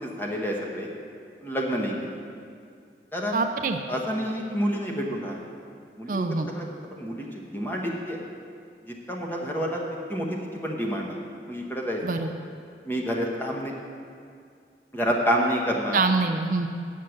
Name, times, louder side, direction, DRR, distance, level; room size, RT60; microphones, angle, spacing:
voice 1, 0.0-0.9 1.4-2.2 3.1-3.4 3.9-5.4 6.0-8.2 8.8-9.8 10.1-11.2 11.5-12.2 12.8-13.7 14.9-16.1, equal, 10° left, -1 dB, 1.1 m, -29 dB
voice 2, 3.3-3.8 6.1-6.5 12.0-12.3 15.9-16.7, right 3 dB, 50° right, 6 dB, 0.4 m, -25 dB
8.4 x 6.5 x 7.7 m, 2.3 s
head